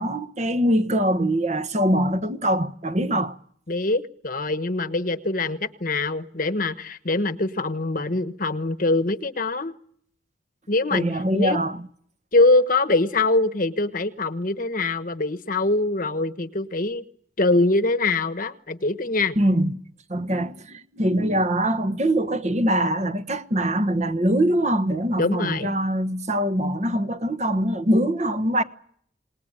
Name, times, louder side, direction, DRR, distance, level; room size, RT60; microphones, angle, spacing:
voice 1, 0.0-3.4 10.9-11.9 19.4-19.8 20.1-28.6, right 1 dB, 35° right, 1.2 m, -23 dB
voice 2, 3.7-9.7 10.7-11.1 11.3-11.6 12.3-17.0 17.4-19.4 25.2-25.7, left 2 dB, 45° left, 1.3 m, -23 dB
28.0 x 20.0 x 8.9 m
head